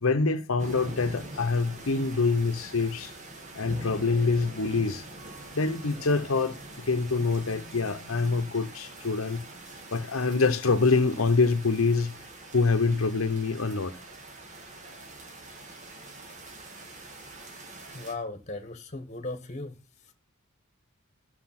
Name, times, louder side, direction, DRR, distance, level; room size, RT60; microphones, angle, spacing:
voice 1, 0.0-3.1 3.5-5.0 5.5-9.4 9.9-12.1 12.5-14.0, left 4 dB, 80° left, 0.9 m, -25 dB
sound 1, 0.6-18.1, right 2 dB, 35° right, 1.9 m, -44 dB
voice 2, 17.9-19.8, left 2 dB, 35° left, 1.4 m, -37 dB
14.0 x 6.6 x 5.9 m
head